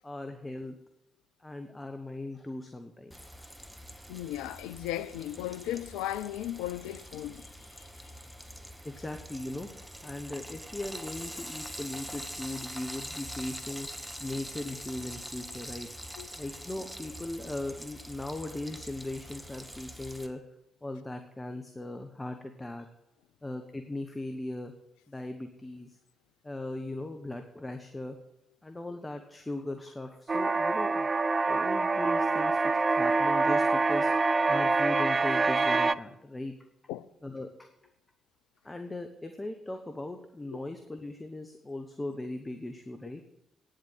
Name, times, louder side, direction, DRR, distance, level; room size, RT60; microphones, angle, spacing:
voice 1, 0.0-0.8 1.4-3.3 8.8-9.7 10.0-13.9 14.2-15.9 16.4-20.4 20.8-22.9 23.4-24.7 25.1-26.0 26.4-28.2 28.6-31.1 31.5-36.5 37.2-37.7 38.6-43.2, left 2 dB, 20° left, 1.2 m, -38 dB
Frying (food), 3.1-20.3, equal, ahead, 1.3 m, -44 dB
voice 2, 4.1-7.5 16.2-16.3 31.4-31.5 36.9-37.1, left 13 dB, 70° left, 0.4 m, -36 dB
sound 1, 30.3-35.9, right 3 dB, 35° right, 0.5 m, -25 dB
9.6 x 7.7 x 9.2 m
figure-of-eight pair, 40°, 0 cm